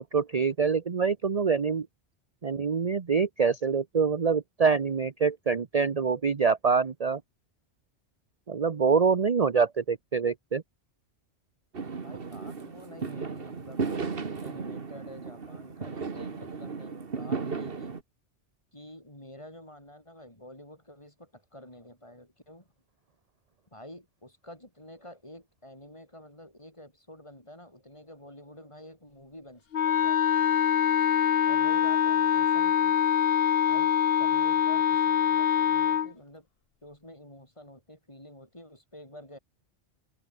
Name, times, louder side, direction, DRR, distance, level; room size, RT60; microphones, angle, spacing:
voice 1, 0.0-1.9 2.4-7.2 8.5-10.6, right 5 dB, 35° right, 0.9 m, -25 dB
Fireworks, 11.7-18.0, right 5 dB, 55° right, 1.8 m, -35 dB
voice 2, 12.0-13.9 14.4-18.0 18.7-22.7 23.7-30.6 31.5-33.0 33.7-36.5 36.8-39.4, left 1 dB, 25° left, 5.8 m, -49 dB
Wind instrument woodwind instrument, 29.7-36.1, left 9 dB, 60° left, 1.0 m, -24 dB
omnidirectional pair, 1.2 m